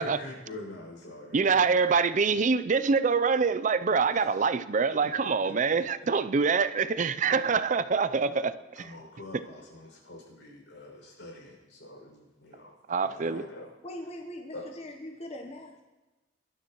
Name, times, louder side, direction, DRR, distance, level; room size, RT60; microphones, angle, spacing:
voice 1, 0.0-1.9 3.9-4.2 5.0-5.5 8.2-8.5 8.8-12.7 13.0-13.7 14.5-14.6, left 1 dB, 85° left, 6.1 m, -45 dB
voice 2, 1.3-9.0 12.9-13.4, right 5 dB, 40° right, 0.5 m, -25 dB
voice 3, 13.8-15.8, left 1 dB, 35° left, 1.0 m, -41 dB
22.0 x 12.5 x 3.0 m
head